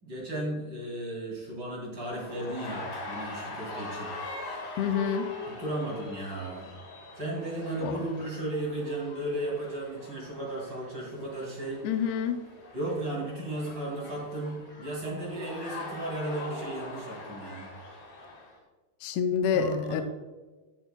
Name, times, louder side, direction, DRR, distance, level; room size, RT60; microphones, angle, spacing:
voice 1, 0.0-4.1 5.5-6.8 7.2-11.8 12.7-17.7 19.5-20.0, right 1 dB, 30° right, -3 dB, 2.7 m, -35 dB
sound 1, 2.0-18.6, left 2 dB, 55° left, 2.8 m, -42 dB
voice 2, 4.8-5.2 7.8-7.9 11.8-12.4 19.0-20.0, left 7 dB, 90° left, 6 dB, 2.6 m, -27 dB
15.0 x 6.3 x 2.2 m, 1.3 s
omnidirectional pair, 4.4 m